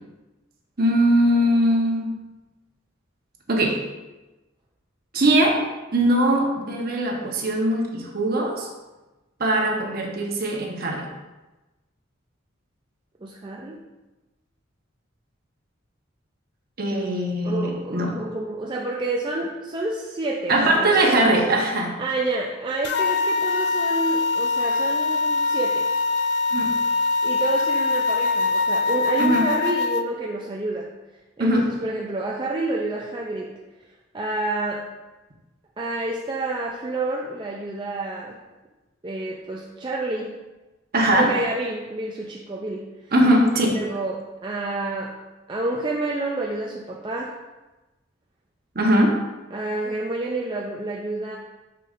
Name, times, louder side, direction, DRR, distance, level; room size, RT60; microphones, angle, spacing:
voice 1, 0.8-2.1 3.5-3.8 5.1-5.6 5.9-8.7 9.4-11.1 16.8-18.2 20.5-21.9 26.5-26.7 29.2-29.5 31.4-31.7 40.9-41.3 43.1-43.8 48.7-49.1, right 1 dB, 50° right, 0 dB, 1.0 m, -20 dB
voice 2, 13.2-13.8 17.4-21.2 22.0-25.9 27.2-30.9 31.4-33.6 34.1-34.9 35.8-38.4 39.0-40.3 41.1-42.9 43.7-45.2 45.5-47.4 49.5-51.4, right 2 dB, 25° right, -2 dB, 0.4 m, -29 dB
sound 1, 22.8-30.0, left 3 dB, 55° left, 0.3 m, -23 dB
6.4 x 5.8 x 2.5 m, 1.1 s
head